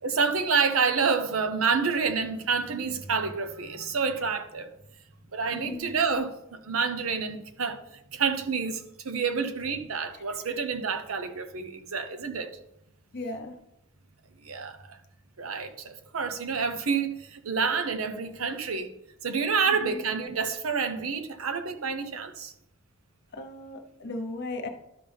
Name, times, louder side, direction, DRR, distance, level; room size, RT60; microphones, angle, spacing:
voice 1, 0.0-4.7 5.3-7.8 8.1-12.6 14.4-15.0 15.4-18.9 19.2-22.5, right 5 dB, 80° right, 0.8 m, -28 dB
voice 2, 5.5-5.9 9.4-9.5 13.1-13.5 19.7-20.0 23.3-24.7, left 2 dB, 55° left, 1.1 m, -37 dB
12.0 x 5.3 x 3.5 m
head